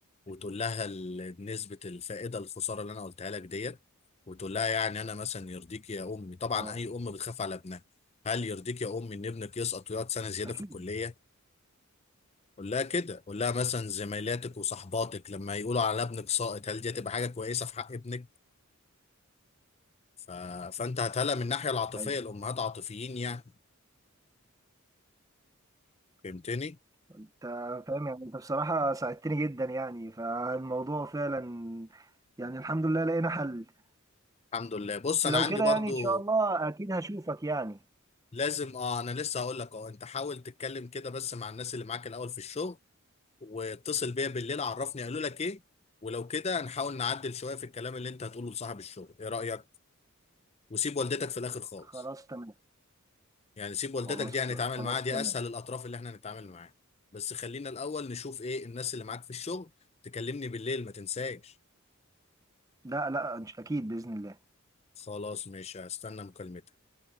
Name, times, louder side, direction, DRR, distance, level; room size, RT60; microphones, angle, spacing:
voice 1, 0.3-3.8 4.3-7.8 8.2-11.1 12.6-18.3 20.3-23.4 26.2-26.8 34.5-36.2 38.3-42.8 43.4-45.6 46.0-49.6 50.7-52.0 53.6-56.7 57.1-59.7 60.0-61.5 65.0-66.6, left 5 dB, 30° left, 0.5 m, -34 dB
voice 2, 27.2-32.0 32.4-33.7 35.3-37.8 51.9-52.5 54.1-55.3 62.8-64.4, right 2 dB, 15° right, 0.6 m, -32 dB
head